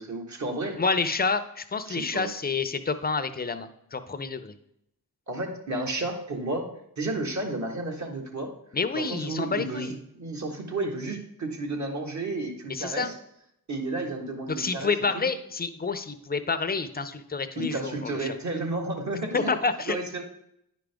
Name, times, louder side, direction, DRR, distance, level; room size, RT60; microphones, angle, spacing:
voice 1, 0.0-0.8 1.9-2.3 5.3-6.7 7.0-8.5 8.9-13.1 13.7-15.3 17.6-19.5 19.9-20.2, right 2 dB, 50° right, 2 dB, 1.8 m, -32 dB
voice 2, 0.8-4.5 8.7-9.9 12.7-13.1 14.5-18.3 19.3-20.0, left 4 dB, 25° left, 10 dB, 0.6 m, -29 dB
9.7 x 5.1 x 3.5 m, 0.77 s
cardioid pair, 65°, 38 cm